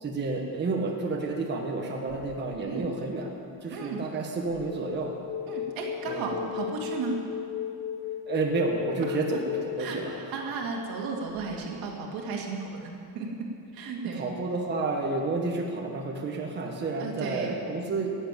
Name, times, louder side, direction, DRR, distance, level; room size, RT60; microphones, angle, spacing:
voice 1, 0.0-5.1 6.1-6.5 8.3-10.2 14.1-18.1, right 3 dB, 30° right, 0 dB, 1.4 m, -30 dB
sound 1, 2.3-2.8 4.5-12.2, left 10 dB, 65° left, 0.9 m, -37 dB
voice 2, 3.7-4.0 5.5-7.2 9.1-9.4 9.8-13.3 13.7-14.3 17.0-17.5, right 4 dB, 80° right, 0 dB, 2.5 m, -34 dB
14.0 x 8.1 x 9.0 m, 2.5 s
cardioid pair, 150°, 35 cm